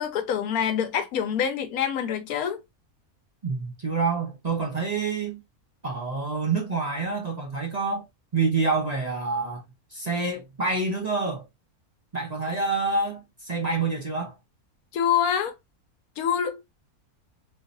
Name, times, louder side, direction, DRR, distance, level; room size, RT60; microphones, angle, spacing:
voice 1, 0.0-2.6 14.9-15.5 16.2-16.6, left 8 dB, 75° left, 1.1 m, -26 dB
voice 2, 3.4-5.4 5.8-8.0 8.3-9.6 9.9-11.5 12.1-14.3, right 4 dB, 30° right, 0.9 m, -27 dB
3.7 x 2.7 x 2.6 m
omnidirectional pair, 1.6 m